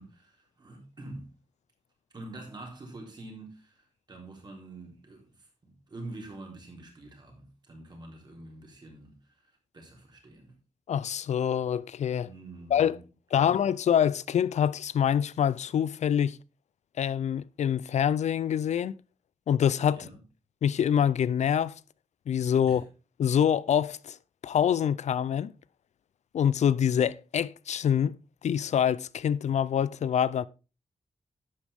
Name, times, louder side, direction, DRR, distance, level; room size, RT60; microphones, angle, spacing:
voice 1, 0.0-1.4 2.1-10.5 12.2-13.0 13.3-13.5 19.9-20.2 22.6-22.8, right 2 dB, 40° right, 3.7 m, -46 dB
voice 2, 10.9-12.3 12.7-13.0 13.3-16.4 17.0-18.9 19.5-20.1 20.6-21.7 22.3-22.8 23.2-24.2 24.4-25.5 26.3-28.2 28.4-30.4, left 9 dB, 80° left, 0.4 m, -25 dB
11.5 x 8.4 x 3.5 m
wide cardioid pair, 155°, 12 cm